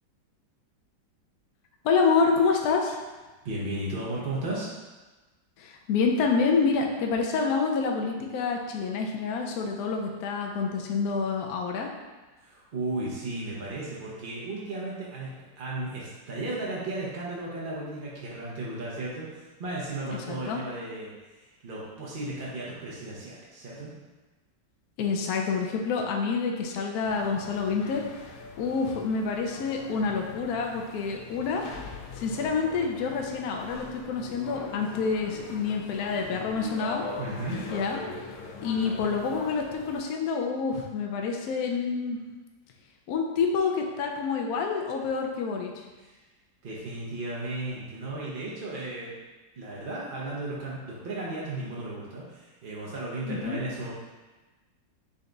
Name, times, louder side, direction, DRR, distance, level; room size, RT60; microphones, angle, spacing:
voice 1, 1.8-3.0 5.6-11.9 20.3-20.6 25.0-28.0 28.6-31.6 32.2-37.1 37.7-38.0 38.6-42.2 43.1-45.7 53.3-53.6, left 5 dB, 70° left, 2 dB, 1.0 m, -27 dB
voice 2, 3.4-4.7 12.4-23.9 37.2-37.6 46.0-46.2 46.6-49.2 49.6-53.9, right 2 dB, 55° right, -5 dB, 0.6 m, -35 dB
sound 1, 27.0-40.0, left 3 dB, 90° left, 1.3 m, -41 dB
4.0 x 3.4 x 3.8 m, 1.2 s
omnidirectional pair, 2.0 m